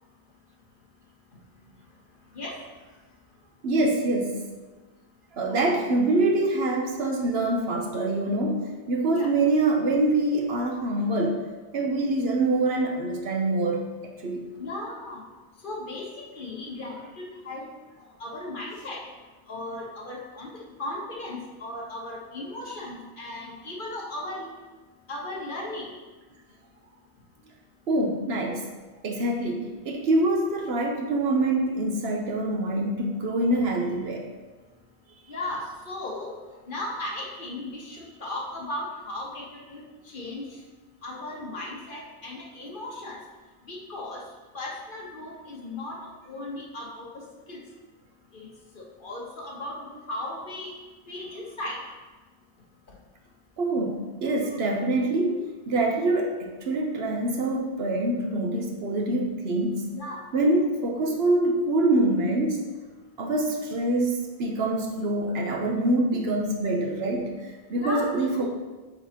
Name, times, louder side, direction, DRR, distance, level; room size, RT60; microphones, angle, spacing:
voice 1, 3.6-4.4 5.3-11.4 11.7-14.4 27.9-28.6 29.0-34.3 53.6-59.9 60.3-62.6 63.2-68.5, right 2 dB, 70° right, 1 dB, 1.0 m, -25 dB
voice 2, 14.6-15.2 15.6-17.7 18.2-19.0 19.5-20.5 20.8-24.5 25.1-25.9 35.3-36.3 36.7-39.8 40.1-40.4 41.0-43.2 43.7-44.2 44.5-46.0 46.3-47.6 48.3-48.5 48.7-50.7 51.1-51.8 59.9-60.2 67.8-68.1 68.3-68.5, left 1 dB, 55° left, -2 dB, 1.2 m, -36 dB
8.0 x 4.2 x 2.8 m, 1.2 s
omnidirectional pair, 1.1 m